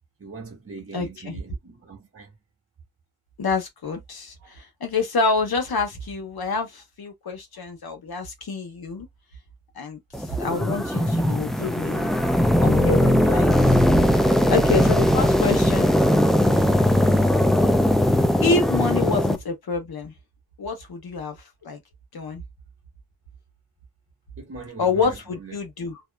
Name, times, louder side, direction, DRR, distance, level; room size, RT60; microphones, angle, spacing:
voice 1, 0.2-2.3 10.8-11.2 24.4-25.6, right 4 dB, 40° right, 1.1 m, -41 dB
voice 2, 0.9-1.4 3.4-9.1 9.7-12.1 12.6-16.3 18.4-20.1 20.6-21.4 21.6-21.8 22.1-22.4 24.8-26.0, left 4 dB, 85° left, 1.0 m, -27 dB
sound 1, 10.1-19.4, equal, ahead, 0.4 m, -19 dB
2.7 x 2.3 x 2.2 m
cardioid pair, 55°, 36 cm